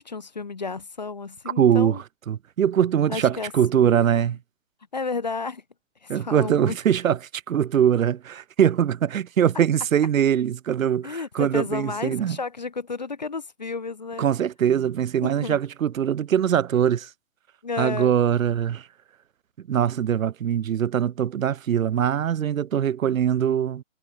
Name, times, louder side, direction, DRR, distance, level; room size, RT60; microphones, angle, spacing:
voice 1, 0.0-2.0 3.1-4.3 4.9-5.6 6.0-6.8 11.0-14.3 15.2-15.6 17.6-18.1, left 4 dB, 35° left, 0.6 m, -32 dB
voice 2, 1.6-2.0 2.3-4.4 6.1-7.2 7.5-12.4 14.2-17.1 17.8-18.9 19.7-23.8, right 9 dB, 80° right, 0.8 m, -22 dB
hypercardioid pair, 180°, 39 cm